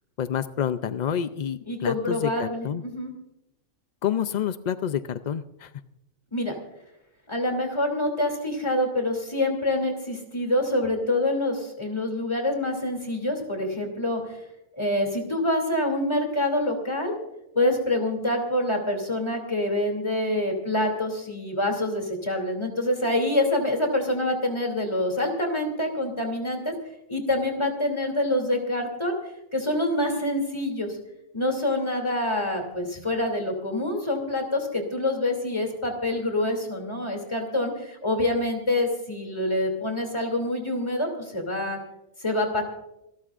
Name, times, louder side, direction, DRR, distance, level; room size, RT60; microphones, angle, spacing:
voice 1, 0.2-2.8 4.0-5.7, left 9 dB, 70° left, 12 dB, 0.4 m, -28 dB
voice 2, 1.7-3.1 6.3-6.5 7.3-14.2 14.8-17.1 17.5-26.7 27.1-29.2 29.5-30.9 31.3-41.8 42.2-42.6, left 1 dB, 20° left, 3 dB, 2.9 m, -26 dB
27.0 x 12.5 x 2.5 m, 0.86 s
omnidirectional pair, 1.4 m